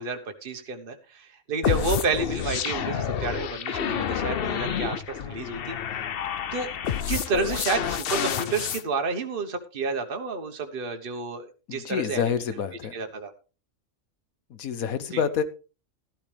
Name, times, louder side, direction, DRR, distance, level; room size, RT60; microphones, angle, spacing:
voice 1, 0.0-5.7 6.5-6.7 7.1-12.2 12.9-13.3 15.1-15.2, right 4 dB, 40° right, 1.4 m, -30 dB
sound 1, 1.6-8.8, left 8 dB, 55° left, 0.8 m, -29 dB
voice 2, 11.7-12.9 14.5-15.4, left 7 dB, 85° left, 1.4 m, -28 dB
13.5 x 12.0 x 3.4 m
omnidirectional pair, 1.4 m